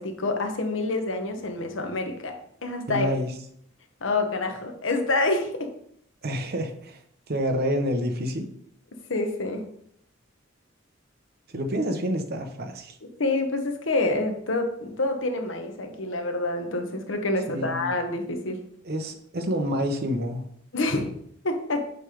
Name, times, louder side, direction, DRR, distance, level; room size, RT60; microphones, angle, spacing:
voice 1, 0.0-2.4 2.6-3.1 4.0-5.7 9.1-9.6 13.2-18.6 20.7-21.1 21.4-21.8, left 2 dB, 75° left, 5 dB, 1.1 m, -27 dB
voice 2, 2.9-3.3 6.2-7.0 7.3-8.5 11.5-13.0 17.5-17.9 18.8-20.4, equal, 55° right, 5 dB, 1.0 m, -28 dB
8.1 x 3.4 x 5.1 m, 0.68 s
head